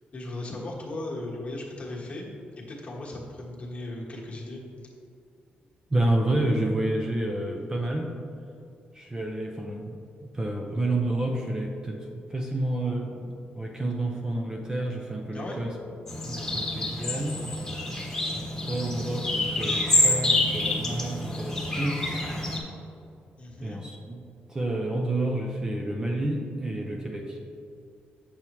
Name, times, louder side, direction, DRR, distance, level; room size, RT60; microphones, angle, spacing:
voice 1, 0.1-2.3 2.5-4.6 15.3-15.7 23.4-23.8, left 2 dB, 35° left, -3 dB, 1.4 m, -37 dB
voice 2, 5.9-8.1 8.9-15.7 16.2-17.4 18.3-22.3 23.6-27.4, right 1 dB, 20° right, 0 dB, 0.6 m, -30 dB
sound 1, 16.1-22.6, left 2 dB, 10° left, 1.4 m, -27 dB
8.1 x 7.1 x 3.0 m, 2.4 s
wide cardioid pair, 140°, 4 cm